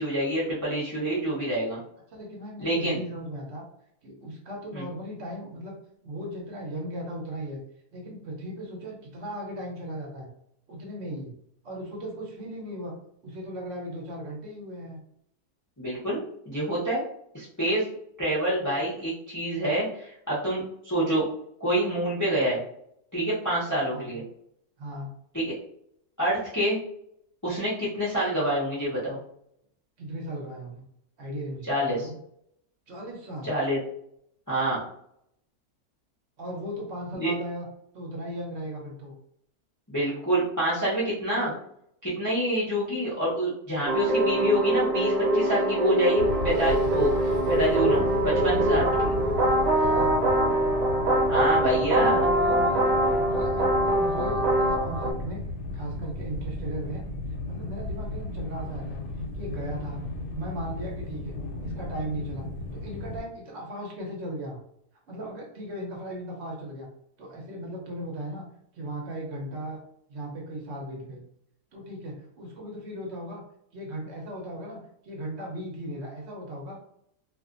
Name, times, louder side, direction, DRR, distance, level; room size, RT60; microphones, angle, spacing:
voice 1, 0.0-1.8 2.6-3.0 4.7-4.8 15.8-17.0 17.3-17.9 18.2-21.2 21.6-22.6 23.1-24.2 25.3-25.5 26.2-26.8 27.4-29.2 31.7-32.1 33.5-33.8 34.5-34.8 37.1-37.3 39.9-41.5 42.0-49.1 51.3-52.3, right 1 dB, 25° left, -9 dB, 0.4 m, -27 dB
voice 2, 2.1-3.6 4.0-5.8 6.0-7.6 7.9-10.3 10.7-11.4 11.6-12.9 13.2-15.0 23.9-24.2 24.8-25.1 30.0-30.8 31.2-32.2 32.9-33.5 36.4-37.7 37.9-39.1 49.7-50.2 52.0-55.4 55.7-57.0 57.5-59.0 59.3-60.1 60.3-61.4 61.6-62.4 62.7-64.6 65.1-66.9 67.2-68.4 68.7-69.8 70.1-71.2 71.7-73.4 73.7-76.8, equal, 55° right, -1 dB, 0.8 m, -37 dB
sound 1, 43.9-55.1, right 1 dB, 85° right, 1.3 m, -23 dB
sound 2, 46.2-63.2, left 1 dB, 85° left, 1.2 m, -34 dB
2.5 x 2.4 x 2.4 m, 0.72 s
omnidirectional pair, 1.7 m